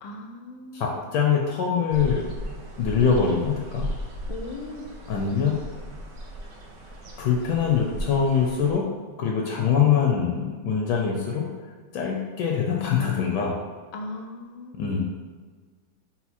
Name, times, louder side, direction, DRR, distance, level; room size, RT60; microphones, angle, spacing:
voice 1, 0.0-0.9 4.3-4.9 13.9-15.1, left 2 dB, 90° left, 3 dB, 1.4 m, -38 dB
voice 2, 0.7-2.4 2.8-3.9 5.1-5.6 7.2-8.9 9.2-11.5 11.9-13.6 14.8-15.1, left 7 dB, 70° left, -1 dB, 1.1 m, -23 dB
sound 1, 1.9-8.7, right 1 dB, 65° right, 0.7 m, -36 dB
5.7 x 2.2 x 4.1 m, 1.5 s
omnidirectional pair, 2.1 m